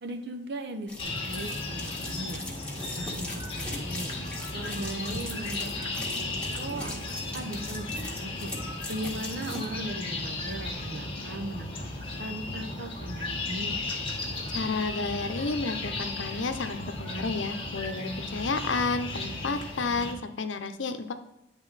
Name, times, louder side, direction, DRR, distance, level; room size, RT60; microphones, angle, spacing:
voice 1, 0.0-2.4 2.9-4.1 4.5-8.5 8.9-11.8 12.2-13.8, right 1 dB, 65° right, 6 dB, 0.8 m, -38 dB
sound 1, 0.9-9.7, left 1 dB, 5° left, 1.6 m, -40 dB
sound 2, 1.0-20.1, left 2 dB, 30° left, 1.5 m, -35 dB
voice 2, 14.5-21.1, left 3 dB, 90° left, 8 dB, 0.7 m, -31 dB
10.0 x 3.7 x 4.1 m, 0.90 s
head